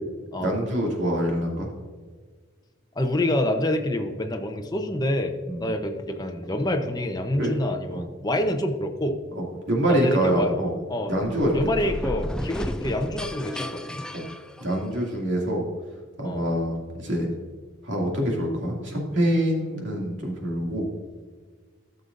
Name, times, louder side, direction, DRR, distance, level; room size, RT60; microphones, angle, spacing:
voice 1, 0.4-1.7 5.5-5.6 7.4-7.5 7.9-8.0 9.3-10.7 11.1-11.6 14.1-14.2 14.6-15.7 16.2-17.3 17.8-20.9, equal, 70° right, -2 dB, 2.4 m, -25 dB
voice 2, 3.0-9.2 9.9-11.1 11.5-14.1 16.2-16.4, left 1 dB, 20° left, 4 dB, 0.8 m, -27 dB
sound 1, 11.1-15.1, equal, 5° left, 0.3 m, -33 dB
13.5 x 6.7 x 2.6 m, 1.5 s
head